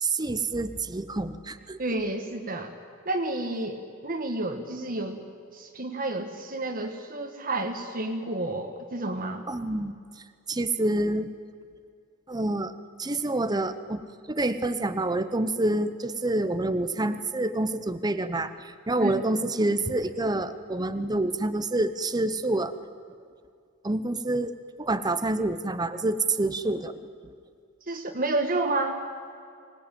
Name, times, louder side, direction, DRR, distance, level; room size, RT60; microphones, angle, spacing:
voice 1, 0.0-1.8 9.5-10.0 10.5-11.3 12.3-12.7 13.0-22.7 23.8-24.5 24.8-27.0, right 2 dB, 20° right, 10 dB, 0.8 m, -27 dB
voice 2, 1.8-2.7 3.0-5.2 5.5-9.4 19.0-19.1 27.9-29.0, right 2 dB, 40° right, 3 dB, 1.5 m, -30 dB
24.5 x 19.0 x 9.1 m, 2.3 s
head